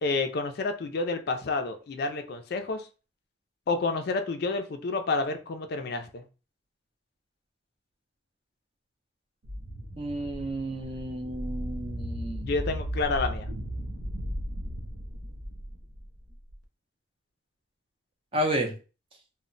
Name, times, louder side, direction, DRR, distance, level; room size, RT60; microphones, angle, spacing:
voice 1, 0.0-2.9 3.7-6.2 12.4-13.5, left 3 dB, 50° left, 7 dB, 0.4 m, -29 dB
sound 1, 9.4-16.5, equal, 85° right, 0.6 m, -36 dB
voice 2, 10.0-12.5 18.3-18.7, right 1 dB, 25° right, 3 dB, 0.4 m, -31 dB
2.1 x 2.1 x 3.7 m, 0.34 s
head